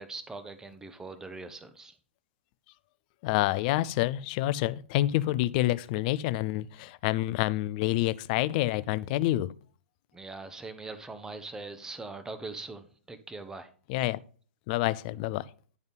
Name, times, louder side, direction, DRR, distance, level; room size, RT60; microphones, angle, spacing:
voice 1, 0.0-1.9 10.1-13.7, right 3 dB, 10° right, 0.9 m, -41 dB
voice 2, 3.2-9.5 13.9-14.2 14.7-15.4, left 16 dB, 45° left, 0.5 m, -28 dB
11.0 x 4.0 x 5.3 m
hypercardioid pair, 120°, 6 cm